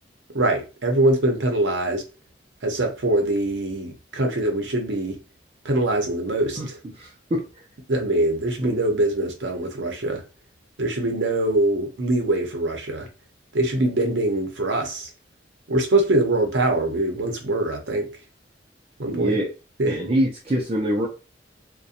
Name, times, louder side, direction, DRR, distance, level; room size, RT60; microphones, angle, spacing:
voice 1, 0.3-2.0 2.6-5.2 5.6-6.8 7.9-10.2 10.8-13.1 13.5-15.1 15.7-18.1 19.0-19.4 19.8-20.0, right 2 dB, 75° right, 0.7 m, -23 dB
voice 2, 7.0-7.4 8.1-8.2 8.6-8.8 19.1-19.5 19.9-21.1, equal, 30° right, 0.4 m, -25 dB
2.7 x 2.1 x 2.4 m
head